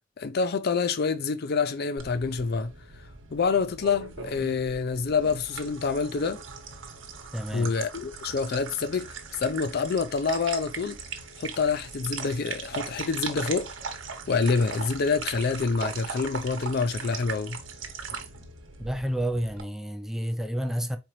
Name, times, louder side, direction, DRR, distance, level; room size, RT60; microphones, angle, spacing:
voice 1, 0.2-2.7 3.3-6.4 7.5-11.0 11.4-13.7 14.3-17.6, left 5 dB, 55° left, 0.4 m, -27 dB
sound 1, 2.0-19.6, right 5 dB, 90° right, 1.0 m, -39 dB
voice 2, 7.3-7.7 18.8-21.0, equal, ahead, 0.4 m, -30 dB
4.4 x 3.8 x 3.0 m
head